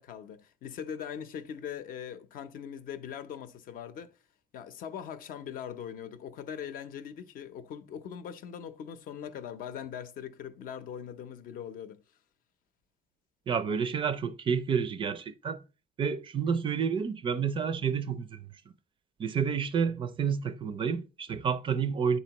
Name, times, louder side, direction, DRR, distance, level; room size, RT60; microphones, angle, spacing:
voice 1, 0.0-4.1 4.5-12.0, left 8 dB, 55° left, 0.6 m, -41 dB
voice 2, 13.5-15.6 16.0-18.5 19.2-22.2, right 6 dB, 30° right, 0.4 m, -29 dB
10.0 x 4.2 x 2.9 m
cardioid pair, 170°, 17 cm